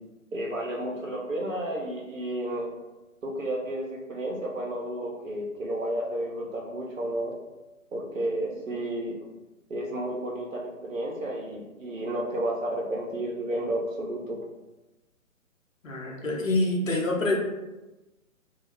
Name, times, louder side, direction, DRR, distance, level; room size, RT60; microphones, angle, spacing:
voice 1, 0.3-2.7 3.2-7.4 7.9-9.2 9.7-14.4, right 1 dB, 70° right, -1 dB, 0.7 m, -32 dB
voice 2, 15.8-17.4, left 2 dB, 65° left, -1 dB, 0.8 m, -26 dB
2.2 x 2.0 x 3.3 m, 1.1 s
figure-of-eight pair, 135°, 42 cm